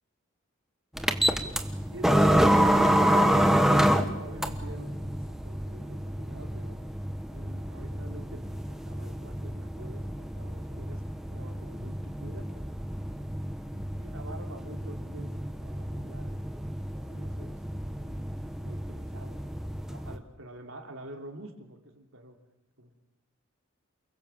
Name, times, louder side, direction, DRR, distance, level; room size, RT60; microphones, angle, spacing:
sound 1, 1.0-20.2, equal, ahead, 1.4 m, -28 dB
voice 1, 1.9-6.8 7.3-11.0 11.3-12.5 13.3-16.4 16.9-18.3 18.6-19.5 19.9-22.4 22.8-22.9, right 1 dB, 70° right, 4 dB, 3.4 m, -45 dB
29.0 x 21.5 x 7.5 m, 0.94 s
head